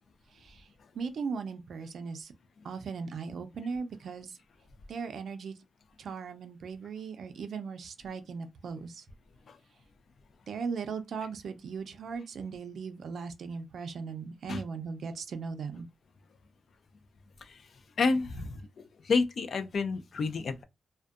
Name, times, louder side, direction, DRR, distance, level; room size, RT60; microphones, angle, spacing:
voice 1, 0.3-0.7 0.9-2.3 2.6-4.4 4.9-5.6 6.0-9.0 10.5-15.9, right 5 dB, 75° right, 0.4 m, -38 dB
voice 2, 18.0-20.6, left 4 dB, 55° left, 0.3 m, -30 dB
2.6 x 2.2 x 2.3 m
wide cardioid pair, 170°, 0 cm